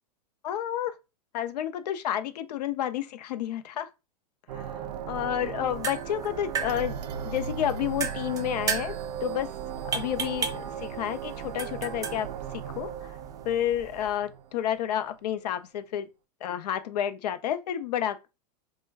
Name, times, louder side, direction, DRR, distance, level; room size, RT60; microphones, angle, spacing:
voice 1, 0.4-0.9 1.3-3.9 4.5-9.0 9.2-9.5 9.9-13.2 13.4-16.1 16.4-18.2, left 11 dB, 75° left, 0.5 m, -30 dB
sound 1, 4.5-15.1, right 8 dB, 70° right, 0.5 m, -37 dB
sound 2, 5.6-14.2, right 6 dB, 15° right, 0.4 m, -36 dB
3.1 x 2.1 x 3.4 m
hypercardioid pair, 125°, 21 cm